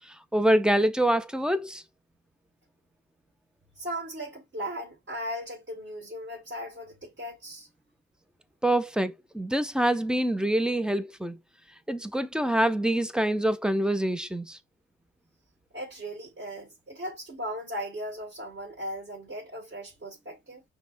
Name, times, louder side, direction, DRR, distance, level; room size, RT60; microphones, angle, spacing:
voice 1, 0.3-1.8 8.6-11.4 11.9-14.6, right 1 dB, 5° right, 0.4 m, -25 dB
voice 2, 3.8-7.7 15.7-20.6, equal, 40° right, 2.0 m, -37 dB
5.7 x 2.1 x 2.6 m
cardioid pair, 90°, 30 cm